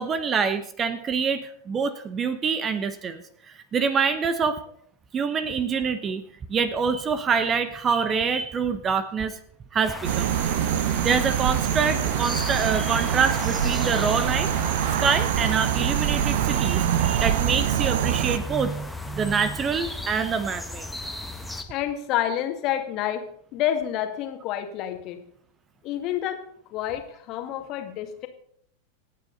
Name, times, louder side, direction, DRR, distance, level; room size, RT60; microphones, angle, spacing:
voice 1, 0.0-3.2 3.7-4.6 5.1-6.2 6.5-9.4 9.7-10.3 11.0-14.5 15.0-20.9, right 6 dB, 25° right, 13 dB, 1.0 m, -25 dB
sound 1, 9.8-21.6, left 1 dB, ahead, 1.6 m, -35 dB
sound 2, 10.0-18.4, right 10 dB, 55° right, 0.8 m, -25 dB
voice 2, 21.7-25.2 25.8-26.4 26.7-28.3, left 11 dB, 40° left, 6 dB, 2.0 m, -28 dB
27.0 x 9.0 x 4.1 m, 0.67 s
figure-of-eight pair, 90°, 0 cm